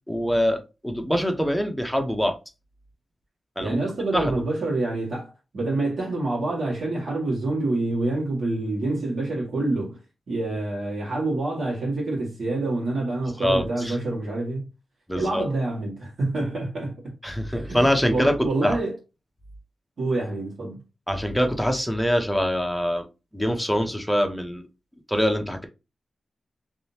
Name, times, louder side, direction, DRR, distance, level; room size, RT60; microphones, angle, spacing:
voice 1, 0.1-2.4 3.6-3.8 4.1-4.3 13.4-14.0 15.1-15.4 17.2-18.8 21.1-23.1 23.3-24.6 25.1-25.7, equal, ahead, 0.8 m, -24 dB
voice 2, 3.6-10.0 10.3-14.7 15.1-17.1 17.5-17.8 18.1-19.0 20.0-20.8, right 2 dB, 60° right, 2.0 m, -27 dB
3.8 x 3.2 x 2.8 m
wide cardioid pair, 105°, 0 cm